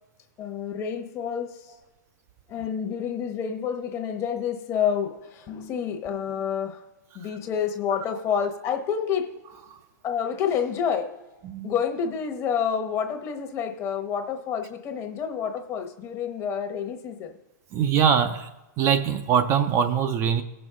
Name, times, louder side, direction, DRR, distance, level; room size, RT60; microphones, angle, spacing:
voice 1, 0.4-1.6 2.5-6.8 7.1-9.3 10.0-11.1 11.6-17.3, left 7 dB, 30° left, 5 dB, 1.0 m, -28 dB
voice 2, 17.7-18.5 18.8-20.4, right 8 dB, 30° right, 7 dB, 0.5 m, -22 dB
16.5 x 6.2 x 3.7 m, 1.0 s
hypercardioid pair, 140°, 10 cm